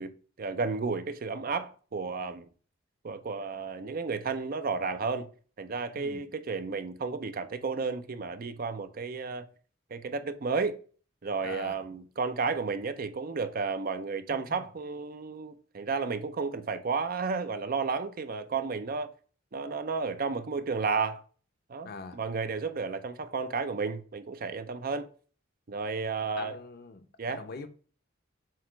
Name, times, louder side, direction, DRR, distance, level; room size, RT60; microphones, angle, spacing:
voice 1, 0.0-2.5 3.0-5.3 5.6-9.5 9.9-10.8 11.2-19.1 19.5-21.2 21.7-25.1 25.7-26.6 27.2-27.4, right 4 dB, 45° right, 0.5 m, -32 dB
voice 2, 5.9-6.2 11.4-11.8 14.3-14.7 21.8-22.2 26.4-27.7, left 4 dB, 50° left, 0.7 m, -43 dB
7.7 x 2.9 x 4.5 m
head